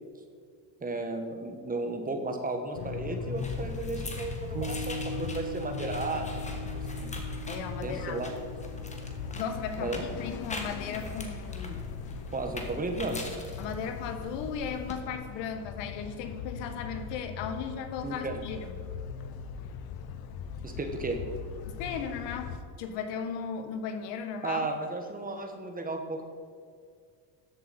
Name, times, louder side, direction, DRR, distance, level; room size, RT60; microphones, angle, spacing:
voice 1, 0.8-7.1 7.8-8.3 9.8-10.0 12.3-13.2 18.0-18.3 20.6-21.2 24.4-26.2, right 3 dB, 20° right, 5 dB, 1.3 m, -34 dB
sound 1, 2.7-22.6, left 6 dB, 55° left, 0.9 m, -40 dB
sound 2, 3.4-14.9, left 2 dB, 15° left, 1.3 m, -43 dB
sound 3, 4.5-14.2, right 2 dB, 70° right, 1.1 m, -43 dB
voice 2, 7.5-8.2 9.3-11.8 13.6-18.7 21.7-24.7, left 6 dB, 75° left, 7 dB, 1.3 m, -36 dB
13.5 x 8.1 x 4.3 m, 2.1 s
cardioid pair, 115°, 44 cm